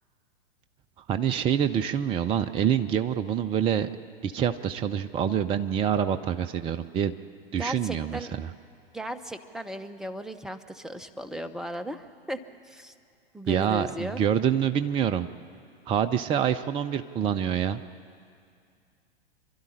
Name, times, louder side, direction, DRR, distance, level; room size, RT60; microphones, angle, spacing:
voice 1, 1.1-3.9 4.2-7.2 7.5-8.5 13.5-15.3 15.9-17.8, right 9 dB, 20° right, 10 dB, 0.5 m, -26 dB
voice 2, 7.6-8.3 8.9-12.4 12.7-12.9 13.3-14.2, equal, ahead, 8 dB, 0.9 m, -36 dB
25.5 x 12.5 x 9.9 m, 2.3 s
figure-of-eight pair, 100°, 30 cm